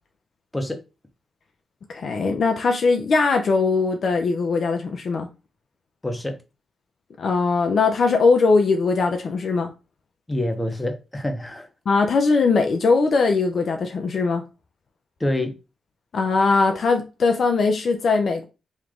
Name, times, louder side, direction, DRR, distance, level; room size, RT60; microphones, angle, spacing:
voice 1, 1.9-5.3 7.2-9.7 11.9-14.4 16.1-18.4, left 4 dB, 65° left, 0.6 m, -20 dB
voice 2, 6.0-6.4 10.3-11.7 15.2-15.6, left 1 dB, 20° left, 1.1 m, -26 dB
3.2 x 3.1 x 3.7 m
supercardioid pair, 50°, 0 cm